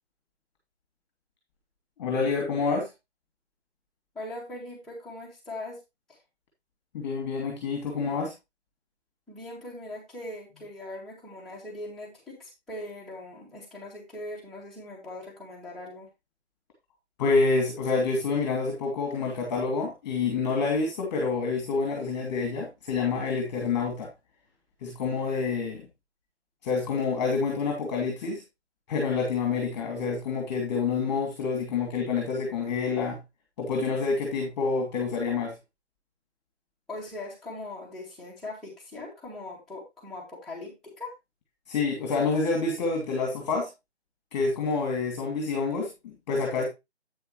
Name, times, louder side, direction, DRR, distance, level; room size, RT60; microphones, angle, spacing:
voice 1, 2.0-2.9 6.9-8.3 17.2-24.1 24.8-25.8 26.6-28.4 28.9-33.2 33.6-35.5 41.7-43.7 44.3-46.6, left 4 dB, 25° left, 1 dB, 2.8 m, -27 dB
voice 2, 4.1-5.8 6.1-6.2 9.3-16.1 36.9-41.1, left 2 dB, ahead, -7 dB, 2.5 m, -40 dB
8.8 x 7.7 x 3.2 m, 0.23 s
figure-of-eight pair, 155°, 35 cm